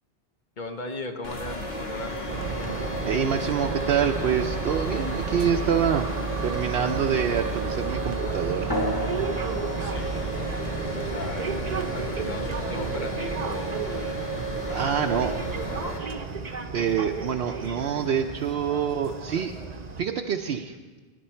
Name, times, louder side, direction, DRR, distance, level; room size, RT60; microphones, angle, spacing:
voice 1, 0.6-2.2 9.8-10.3 10.9-11.5 11.8-13.9 14.6-15.3, left 2 dB, 50° left, 4 dB, 1.1 m, -37 dB
sound 1, 1.2-16.0, right 1 dB, 75° left, 2.1 m, -33 dB
sound 2, 2.3-20.0, right 4 dB, 45° right, 0.8 m, -32 dB
voice 2, 3.1-6.1 6.4-8.7 10.8-10.9 14.7-15.3 16.7-19.5 20.0-20.7, right 8 dB, 75° right, 3 dB, 0.8 m, -26 dB
sound 3, 8.7-13.7, equal, 20° left, 1.1 m, -36 dB
18.5 x 10.5 x 4.4 m, 1.3 s
omnidirectional pair, 1.0 m